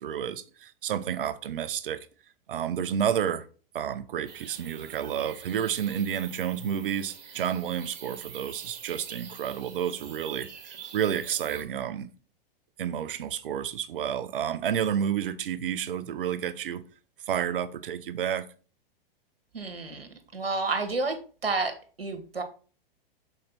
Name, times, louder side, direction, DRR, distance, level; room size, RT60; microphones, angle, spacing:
voice 1, 0.0-2.1 2.5-3.5 3.7-12.1 12.8-16.8 17.3-18.5, right 9 dB, 65° right, 0.7 m, -30 dB
sound 1, 4.3-11.6, right 7 dB, 50° right, 1.9 m, -46 dB
voice 2, 19.5-21.2 21.4-22.4, right 3 dB, 85° right, 1.6 m, -30 dB
6.5 x 4.4 x 4.2 m
figure-of-eight pair, 105°, 29 cm